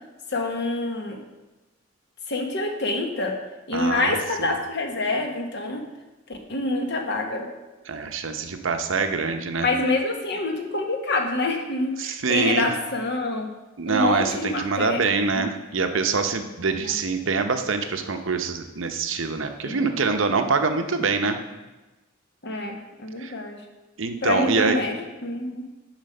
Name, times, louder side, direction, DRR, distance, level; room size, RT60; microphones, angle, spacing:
voice 1, 0.3-1.2 2.3-3.3 3.7-5.8 6.3-7.5 9.6-13.5 13.9-15.5 16.8-16.9 19.6-19.9 22.4-23.6 24.2-25.0 25.2-25.6, left 2 dB, 55° left, 3 dB, 1.2 m, -26 dB
voice 2, 3.7-4.5 7.9-9.7 12.0-12.7 13.8-21.4 23.2-23.3 24.0-24.8, right 4 dB, 65° right, 7 dB, 0.7 m, -25 dB
7.4 x 5.1 x 6.5 m, 1.1 s
head